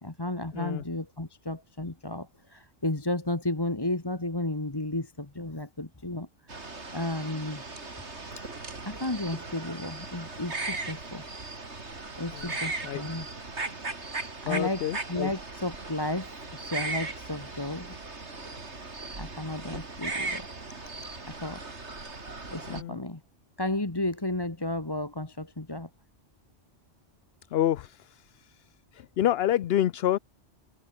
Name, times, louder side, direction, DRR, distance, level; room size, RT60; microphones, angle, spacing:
voice 1, 0.0-6.3 6.6-7.6 8.4-8.5 8.9-11.3 12.2-13.3 14.4-18.0 19.2-20.5 21.3-21.6 22.5-23.2 23.6-25.9, left 2 dB, 20° left, 1.8 m, -33 dB
sound 1, 6.5-22.8, right 3 dB, 65° right, 3.5 m, -38 dB
voice 2, 14.5-15.3 22.7-23.0 27.5-28.5 28.9-30.2, left 12 dB, 65° left, 0.8 m, -28 dB
omnidirectional pair, 1.3 m